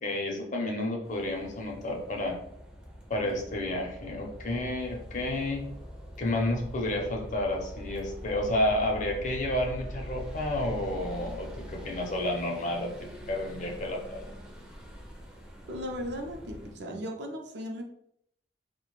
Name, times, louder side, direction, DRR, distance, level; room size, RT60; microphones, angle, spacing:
voice 1, 0.0-2.4 3.1-5.6 6.2-12.9 13.3-14.3, left 1 dB, 45° left, 1 dB, 0.6 m, -30 dB
sound 1, 1.0-16.8, equal, 5° right, 0.4 m, -43 dB
voice 2, 15.7-17.8, equal, 70° right, 2 dB, 0.5 m, -37 dB
2.4 x 2.1 x 3.0 m, 0.72 s
head